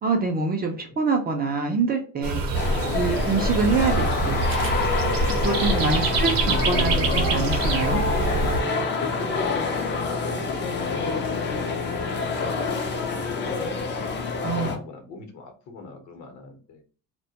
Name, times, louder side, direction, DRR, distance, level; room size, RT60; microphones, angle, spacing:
voice 1, 0.0-2.4 2.9-4.4 5.2-8.0 14.4-14.7, right 4 dB, 30° right, 3 dB, 0.4 m, -25 dB
sound 1, 2.2-8.6, right 2 dB, 80° right, 0.6 m, -25 dB
sound 2, 2.5-14.8, left 4 dB, 35° left, 0.4 m, -27 dB
voice 2, 5.4-6.0 8.7-12.5 14.1-16.8, left 3 dB, 55° left, 4 dB, 0.8 m, -41 dB
sound 3, 6.5-12.6 13.7-13.8, left 1 dB, 90° left, 0.7 m, -34 dB
2.2 x 2.1 x 2.7 m, 0.38 s
cardioid pair, 150°, 33 cm